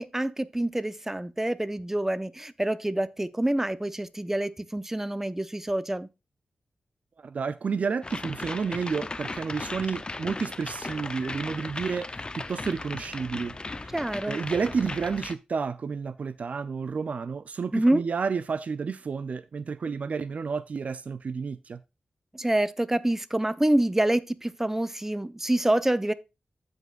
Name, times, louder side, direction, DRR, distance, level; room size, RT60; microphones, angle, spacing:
voice 1, 0.0-6.1 13.9-14.4 17.7-18.0 22.3-26.1, right 1 dB, 15° right, 0.8 m, -26 dB
voice 2, 7.2-13.9 14.3-21.8, right 5 dB, 65° right, 0.4 m, -31 dB
sound 1, 8.0-15.3, left 3 dB, 35° left, 0.6 m, -37 dB
14.5 x 5.2 x 2.4 m
cardioid pair, 55°, 3 cm